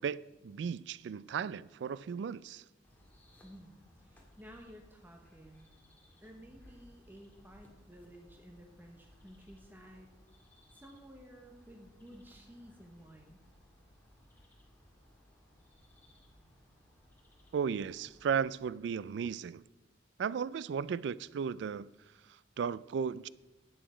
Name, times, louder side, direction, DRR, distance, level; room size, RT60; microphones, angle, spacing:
voice 1, 0.0-2.6 17.5-19.6 20.2-21.9 22.2-23.3, right 6 dB, 65° right, 0.3 m, -35 dB
sound 1, 2.8-18.5, equal, 10° left, 1.8 m, -62 dB
voice 2, 3.4-5.7 6.2-10.1 10.7-13.4, equal, 10° right, 1.0 m, -54 dB
11.5 x 8.1 x 4.9 m
head